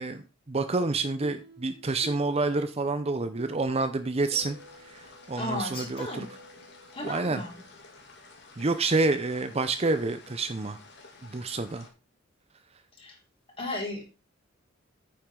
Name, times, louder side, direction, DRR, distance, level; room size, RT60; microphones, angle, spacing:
voice 1, 0.0-4.6 4.8-6.3 7.0-7.4 8.6-10.8 11.2-11.9, right 3 dB, 30° right, 10 dB, 0.6 m, -28 dB
sound 1, 0.8-7.8, right 1 dB, 55° right, 3.3 m, -50 dB
sound 2, 4.3-11.9, left 3 dB, 55° left, 2.6 m, -52 dB
voice 2, 5.3-6.3 6.9-7.6 13.0-13.2 13.6-14.0, left 1 dB, 25° left, -1 dB, 3.9 m, -34 dB
9.4 x 7.4 x 3.8 m, 0.30 s
head